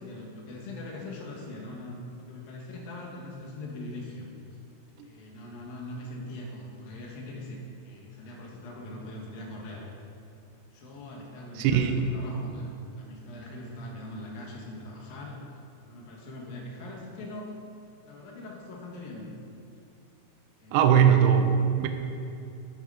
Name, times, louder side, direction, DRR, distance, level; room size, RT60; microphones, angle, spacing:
voice 1, 0.0-4.3 5.0-9.9 10.7-15.4 15.8-17.6 18.1-19.3 20.6-21.6, left 1 dB, 70° left, -1 dB, 3.2 m, -41 dB
voice 2, 11.6-12.0 20.7-21.9, right 8 dB, 80° right, 6 dB, 2.0 m, -20 dB
12.0 x 8.3 x 5.1 m, 2.6 s
omnidirectional pair, 4.5 m